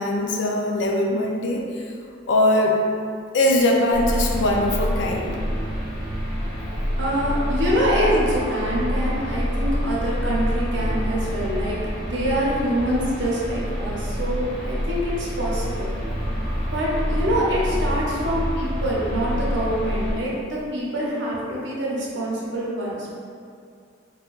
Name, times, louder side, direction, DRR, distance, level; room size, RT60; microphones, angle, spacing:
voice 1, 0.0-1.9 2.3-2.8 3.3-5.4, left 1 dB, 65° left, 0 dB, 0.4 m, -21 dB
sound 1, 3.9-20.1, equal, 45° left, 0.9 m, -27 dB
voice 2, 7.0-11.8 12.1-15.9 16.7-23.1, equal, 70° right, -6 dB, 0.7 m, -25 dB
3.7 x 2.2 x 2.4 m, 2.3 s
head